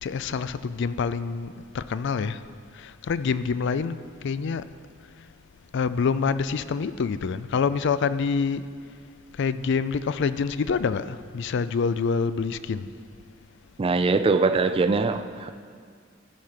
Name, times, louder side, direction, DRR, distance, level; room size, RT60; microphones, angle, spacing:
voice 1, 0.0-2.4 2.7-4.7 5.7-8.7 9.4-12.9, left 5 dB, 65° left, 0.4 m, -26 dB
voice 2, 13.8-15.5, right 4 dB, 30° right, 0.3 m, -22 dB
14.0 x 4.9 x 5.8 m
head